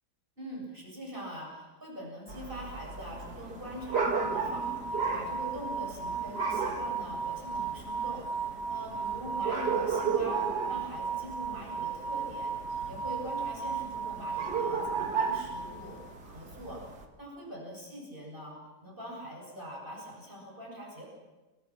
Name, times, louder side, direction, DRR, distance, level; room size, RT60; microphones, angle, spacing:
voice 1, 0.4-12.5 12.8-16.8 17.2-21.1, equal, 30° right, -2 dB, 8.1 m, -43 dB
sound 1, 2.3-17.0, right 5 dB, 65° right, 2.7 m, -35 dB
sound 2, 3.9-16.1, right 5 dB, 90° right, 5.5 m, -36 dB
29.0 x 24.5 x 6.1 m, 1.2 s
omnidirectional pair, 1.9 m